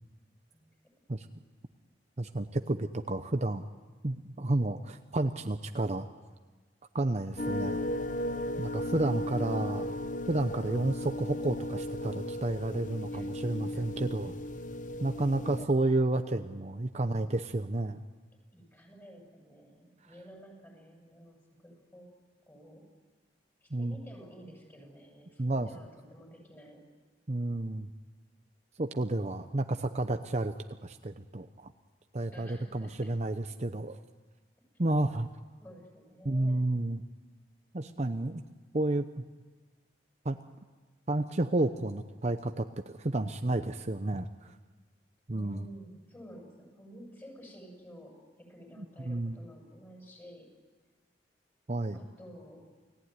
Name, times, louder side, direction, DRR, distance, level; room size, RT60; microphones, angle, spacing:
voice 1, 2.2-3.6 4.0-6.1 6.9-7.8 8.6-9.9 10.3-14.3 15.0-18.0 23.7-24.0 25.4-25.7 27.3-27.9 28.8-30.5 30.8-31.7 32.1-34.0 34.8-35.3 36.2-37.0 37.7-38.4 38.7-39.2 40.2-40.4 41.1-42.7 43.0-44.5 45.3-45.6 48.8-49.4 51.7-52.0, right 2 dB, 40° right, 7 dB, 0.8 m, -31 dB
sound 1, 7.4-15.7, left 1 dB, 45° left, 0.9 m, -36 dB
voice 2, 9.0-9.9 13.1-13.6 15.4-15.7 18.5-22.1 22.5-22.8 23.6-26.8 32.3-33.1 35.6-36.6 37.8-38.5 45.3-50.5 51.9-52.6, equal, 15° left, 0 dB, 7.8 m, -52 dB
29.5 x 17.5 x 9.7 m, 1.3 s
head